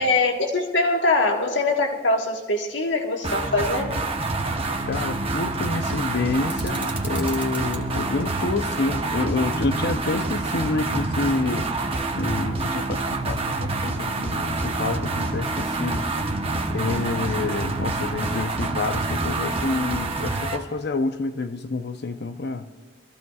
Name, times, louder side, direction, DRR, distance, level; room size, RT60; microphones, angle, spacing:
voice 1, 0.0-4.0, left 2 dB, 85° left, 1.4 m, -22 dB
sound 1, 3.2-20.6, right 2 dB, 30° right, 0.9 m, -27 dB
voice 2, 4.8-11.7 12.2-16.3 16.7-22.7, left 3 dB, 60° left, 0.7 m, -28 dB
sound 2, 6.5-7.8, right 2 dB, 10° right, 1.4 m, -38 dB
24.0 x 14.0 x 2.4 m
head